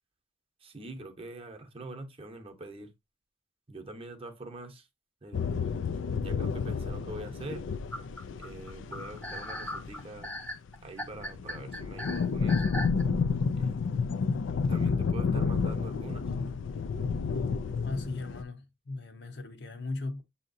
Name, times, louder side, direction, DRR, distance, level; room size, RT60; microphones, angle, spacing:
voice 1, 0.6-2.9 3.7-4.9 5.2-5.5 6.2-7.7 8.4-10.3 10.8-12.8 13.5-13.8 14.7-16.3, right 2 dB, 30° right, 0.8 m, -44 dB
sound 1, 5.3-10.7 11.0-18.4, left 5 dB, 85° left, 0.4 m, -30 dB
sound 2, 7.9-13.0, equal, 10° left, 0.7 m, -38 dB
voice 2, 17.8-20.2, left 2 dB, 60° left, 0.8 m, -37 dB
7.4 x 2.8 x 2.6 m
head